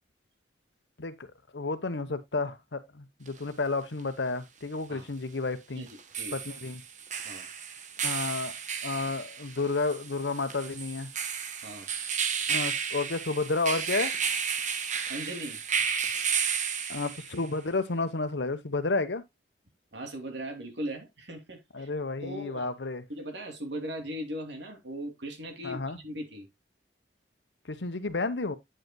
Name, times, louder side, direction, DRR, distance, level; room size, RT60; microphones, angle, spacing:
voice 1, 1.5-5.9 6.3-6.8 8.0-8.6 8.8-11.1 12.5-14.1 16.9-19.2 21.7-23.0 25.6-26.0 27.6-28.6, left 3 dB, 80° left, 1.0 m, -31 dB
sound 1, 3.3-3.4 5.9-17.5, right 7 dB, 45° right, 1.0 m, -32 dB
voice 2, 15.1-15.6 19.9-21.9 22.2-22.7 23.1-26.5, equal, 75° right, 2.6 m, -38 dB
8.9 x 8.1 x 2.2 m
head